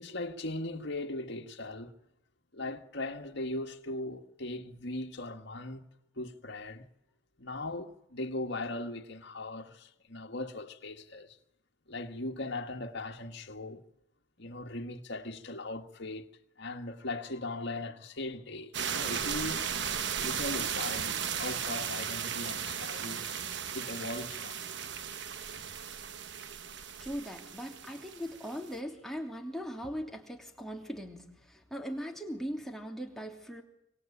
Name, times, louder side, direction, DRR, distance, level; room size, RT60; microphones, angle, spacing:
voice 1, 0.0-1.9 2.5-5.9 6.2-6.9 7.4-11.4 11.9-13.8 14.4-16.3 16.6-19.7 20.2-23.4 23.7-24.6, left 2 dB, 55° left, 2.0 m, -39 dB
sound 1, 18.7-28.8, right 7 dB, 55° right, 1.1 m, -36 dB
voice 2, 27.0-33.6, equal, ahead, 3.0 m, -39 dB
26.0 x 25.5 x 8.8 m
head